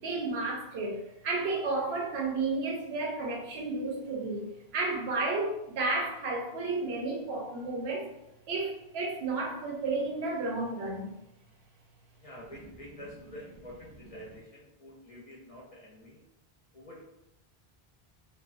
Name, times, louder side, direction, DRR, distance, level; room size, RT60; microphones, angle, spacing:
voice 1, 0.0-8.1 8.5-11.1, right 3 dB, 80° right, 0 dB, 0.9 m, -32 dB
voice 2, 12.2-16.2 16.7-17.1, equal, 50° left, -5 dB, 0.5 m, -48 dB
2.4 x 2.2 x 2.4 m, 0.87 s
omnidirectional pair, 1.1 m